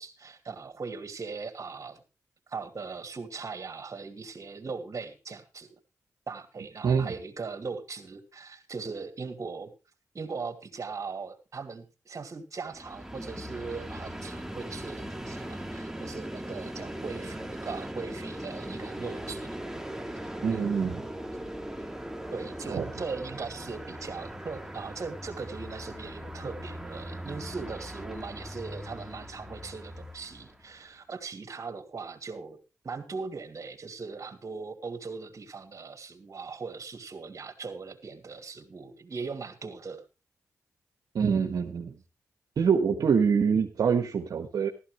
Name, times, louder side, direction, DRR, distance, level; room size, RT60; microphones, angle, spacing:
voice 1, 0.0-2.0 2.5-5.8 6.3-9.7 10.1-19.6 22.3-32.6 32.8-40.0, right 4 dB, 55° right, 6 dB, 2.8 m, -39 dB
voice 2, 6.8-7.1 20.4-21.0 22.7-22.9 41.1-42.0 42.6-44.7, right 6 dB, 75° right, 3 dB, 1.3 m, -25 dB
Train, 12.7-30.8, right 1 dB, 5° right, 2.4 m, -39 dB
14.0 x 13.5 x 3.2 m, 0.30 s
supercardioid pair, 45°, 6 cm